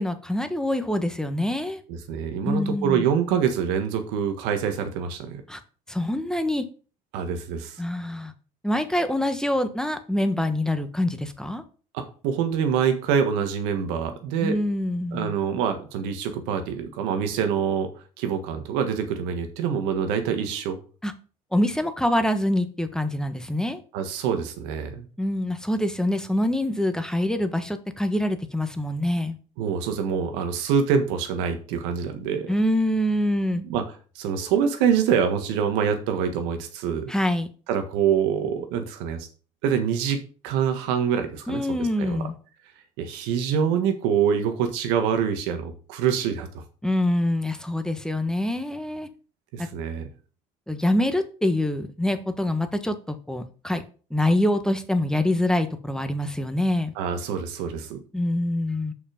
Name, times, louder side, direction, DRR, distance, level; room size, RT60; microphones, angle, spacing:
voice 1, 0.0-1.8 2.4-3.0 5.5-5.6 5.9-6.6 7.8-8.3 8.6-11.6 14.4-15.3 21.0-21.1 21.5-23.8 25.2-29.4 32.5-33.6 37.1-37.5 41.5-42.3 46.8-49.1 50.7-53.8 54.1-56.9 58.1-58.9, left 1 dB, 5° left, 9 dB, 1.3 m, -25 dB
voice 2, 1.9-5.4 7.1-7.8 11.9-14.6 15.1-17.9 18.2-20.8 23.9-25.1 29.6-32.5 33.5-33.8 34.1-37.1 37.7-39.3 39.6-42.3 43.0-46.6 49.5-50.1 56.9-58.0, right 7 dB, 80° right, 7 dB, 1.6 m, -25 dB
6.6 x 5.6 x 5.1 m, 0.39 s
hypercardioid pair, 65°, 18 cm